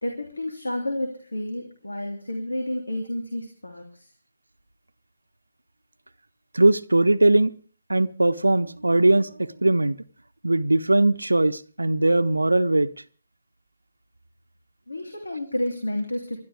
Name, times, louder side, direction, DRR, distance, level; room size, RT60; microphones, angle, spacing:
voice 1, 0.0-4.0 14.9-16.4, left 1 dB, 75° left, 2.9 m, -30 dB
voice 2, 6.5-7.5 7.9-10.0 10.4-12.9, right 2 dB, 80° right, 0.8 m, -20 dB
29.0 x 12.5 x 3.5 m
figure-of-eight pair, 140°, 0 cm